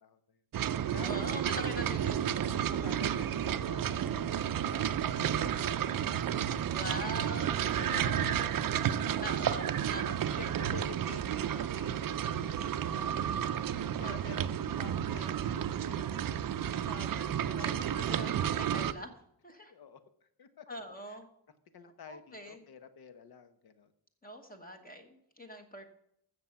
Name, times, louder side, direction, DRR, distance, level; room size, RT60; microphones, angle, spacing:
voice 1, 0.0-1.7 2.4-6.7 7.6-8.6 9.1-9.7 10.3-13.7 14.0-16.5 17.0-17.2 17.5-18.7 19.7-20.0 20.4-20.8 21.1-21.2 21.7-23.9, left 6 dB, 60° left, 10 dB, 1.2 m, -50 dB
sound 1, 0.5-18.9, right 9 dB, 55° right, 0.6 m, -32 dB
voice 2, 1.0-2.6 6.7-8.5 9.2-10.5 13.3-13.4 14.0-14.4 16.7-19.1 19.4-19.7 20.7-21.3 22.1-22.6 24.2-25.9, equal, 20° left, 5 dB, 1.2 m, -44 dB
15.0 x 6.8 x 5.8 m, 0.74 s
wide cardioid pair, 160°, 42 cm